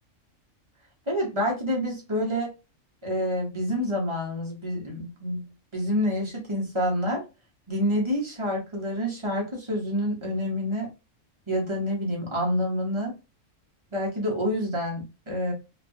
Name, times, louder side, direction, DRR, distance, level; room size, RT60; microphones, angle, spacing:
voice 1, 1.1-2.5 3.0-5.4 5.7-7.2 7.7-10.9 11.5-13.1 13.9-15.5, equal, 25° right, -2 dB, 0.8 m, -27 dB
3.0 x 2.3 x 2.6 m, 0.28 s
omnidirectional pair, 1.4 m